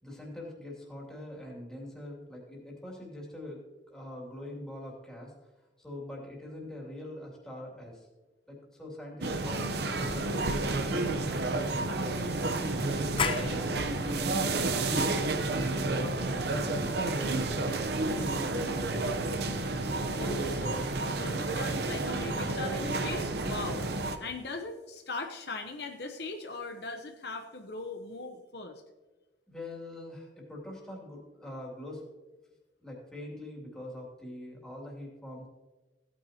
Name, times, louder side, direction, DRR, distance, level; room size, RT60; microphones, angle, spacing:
voice 1, 0.0-3.6 3.9-5.3 5.8-8.1 8.5-10.3 10.9-11.5 11.9-12.1 12.7-17.6 18.2-19.1 29.5-32.0 32.8-35.5, left 1 dB, 5° left, -4 dB, 2.7 m, -43 dB
sound 1, 9.2-24.2, right 2 dB, 60° right, 0.8 m, -30 dB
sound 2, 13.2-18.6, left 5 dB, 30° left, 0.6 m, -39 dB
voice 2, 20.2-28.8, left 3 dB, 60° left, 4 dB, 0.9 m, -40 dB
16.0 x 9.4 x 2.9 m, 1.2 s
head